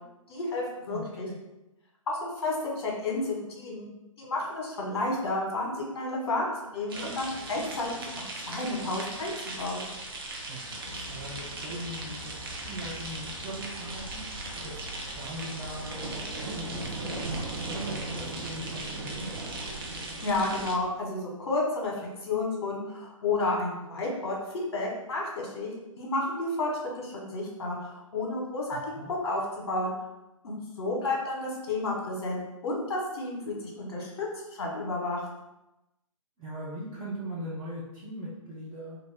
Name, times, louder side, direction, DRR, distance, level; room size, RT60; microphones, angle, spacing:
voice 1, 0.3-1.3 2.1-3.9 4.2-9.9 20.2-21.9 22.2-24.4 24.7-26.7 27.0-28.8 29.2-29.9 30.4-34.3 34.5-35.2, left 2 dB, 50° left, -2 dB, 1.1 m, -31 dB
voice 2, 0.9-1.3 10.5-12.4 12.6-14.2 14.5-14.8 15.1-19.5 28.7-29.1 36.4-39.0, right 1 dB, 10° right, -9 dB, 0.3 m, -40 dB
sound 1, 6.9-20.8, right 2 dB, 40° right, 0.7 m, -38 dB
sound 2, 10.7-18.6, left 1 dB, 90° right, 0.9 m, -45 dB
2.9 x 2.4 x 3.4 m, 0.95 s
figure-of-eight pair, 130°, 18 cm